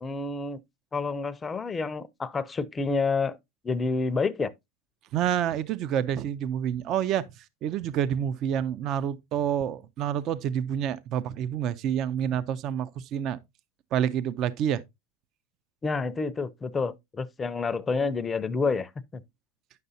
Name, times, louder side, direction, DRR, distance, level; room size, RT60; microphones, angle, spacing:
voice 1, 0.0-0.6 0.9-3.4 3.6-4.5 15.8-19.2, left 4 dB, 20° left, 0.5 m, -29 dB
voice 2, 5.1-13.4 13.9-14.8, right 9 dB, 45° right, 0.5 m, -28 dB
9.3 x 6.7 x 2.7 m
supercardioid pair, 115°, 0 cm